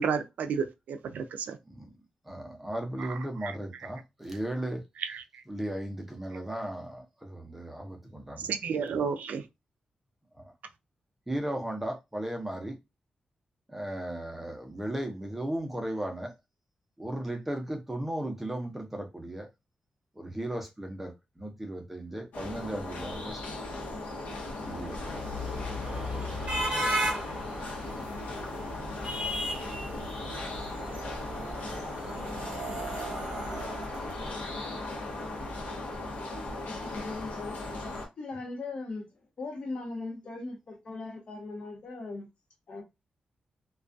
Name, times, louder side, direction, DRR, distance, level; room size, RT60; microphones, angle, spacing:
voice 1, 0.0-1.6 3.4-3.5 5.0-5.2 8.4-9.4, right 6 dB, 85° right, 0.3 m, -31 dB
voice 2, 2.2-4.8 5.5-8.5 10.4-10.5 11.3-12.8 13.7-16.3 17.0-19.5 20.1-23.4 24.6-25.2, right 1 dB, 10° right, 0.6 m, -36 dB
sound 1, 22.3-38.1, left 2 dB, 85° left, 0.8 m, -37 dB
sound 2, 24.4-34.7, equal, 40° right, 0.9 m, -36 dB
voice 3, 36.7-39.1 39.4-42.3 42.7-42.8, left 3 dB, 45° left, 0.8 m, -39 dB
2.2 x 2.2 x 2.5 m
wide cardioid pair, 155°, 3 cm